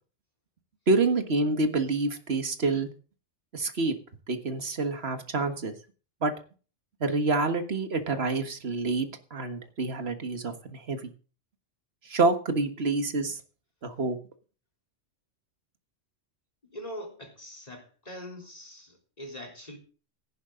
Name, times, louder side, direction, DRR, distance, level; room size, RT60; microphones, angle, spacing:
voice 1, 0.9-2.9 3.5-4.0 4.3-5.7 6.2-6.3 7.0-11.1 12.1-13.4 13.8-14.2, right 3 dB, 60° right, 1.8 m, -27 dB
voice 2, 16.6-19.8, equal, 35° left, 3.7 m, -42 dB
16.0 x 11.0 x 3.8 m
omnidirectional pair, 1.2 m